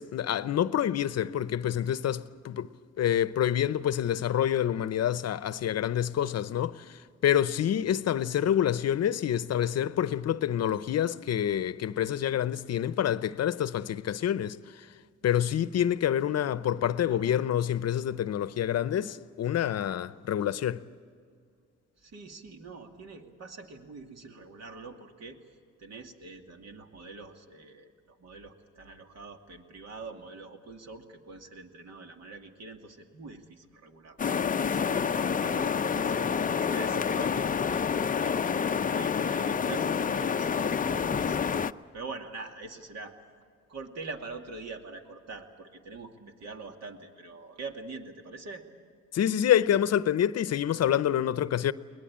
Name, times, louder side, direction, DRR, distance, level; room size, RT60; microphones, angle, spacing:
voice 1, 0.0-2.7 3.0-14.9 15.2-20.8 49.1-51.7, left 10 dB, 55° left, 0.8 m, -27 dB
voice 2, 22.0-25.4 25.8-34.2 34.6-37.9 38.2-38.7 38.9-41.5 41.9-43.1 43.7-48.6, right 3 dB, 60° right, 2.5 m, -44 dB
sound 1, 34.2-41.7, left 6 dB, 25° left, 0.6 m, -28 dB
22.0 x 20.5 x 8.7 m
cardioid pair, 90°, 30 cm